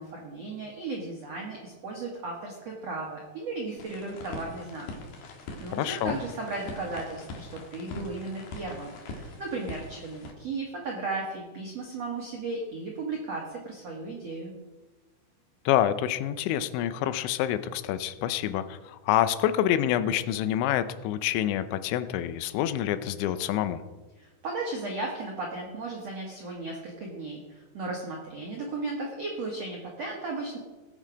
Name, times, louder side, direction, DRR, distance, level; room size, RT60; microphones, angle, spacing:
voice 1, 0.0-4.9 5.6-14.5 24.2-30.6, right 3 dB, 80° right, -1 dB, 1.4 m, -35 dB
sound 1, 3.8-10.3, left 2 dB, 60° left, 3.1 m, -42 dB
voice 2, 5.8-6.2 15.7-23.8, left 11 dB, 85° left, 12 dB, 3.0 m, -27 dB
19.0 x 6.6 x 5.0 m, 1.2 s
omnidirectional pair, 5.3 m